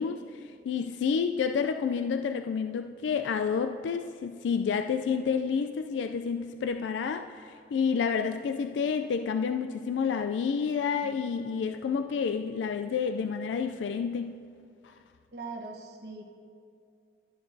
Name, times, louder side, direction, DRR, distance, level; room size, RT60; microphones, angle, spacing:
voice 1, 0.0-14.4 14.8-14.9, left 6 dB, 90° left, 8 dB, 0.3 m, -29 dB
voice 2, 11.0-11.7 15.3-16.2, right 3 dB, 65° right, 2 dB, 1.1 m, -42 dB
11.5 x 10.5 x 2.7 m, 2.4 s
head